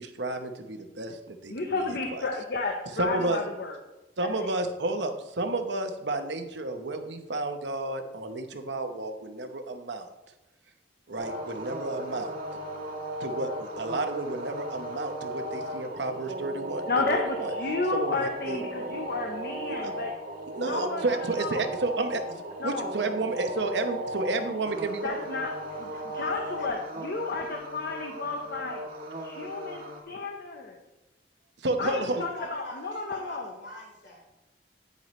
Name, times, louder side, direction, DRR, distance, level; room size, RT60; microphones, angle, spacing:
voice 1, 0.0-1.8 2.1-2.2 3.0-3.4 4.2-10.1 11.1-12.3 13.2-16.8 17.1-17.5 17.9-18.6 19.7-19.9 20.6-25.2 31.6-32.2, right 2 dB, 75° right, 6 dB, 0.9 m, -31 dB
voice 2, 1.5-3.8 4.2-4.5 16.9-20.1 20.6-21.7 22.6-22.9 25.0-25.5 25.8-28.8 29.2-30.8 31.8-33.4, left 3 dB, 60° left, 2 dB, 0.9 m, -32 dB
sound 1, 11.2-30.0, right 1 dB, 55° right, 1.4 m, -37 dB
voice 3, 25.7-26.8 32.1-34.3, left 2 dB, 80° left, -3 dB, 3.6 m, -45 dB
9.4 x 9.2 x 3.2 m, 1.0 s
head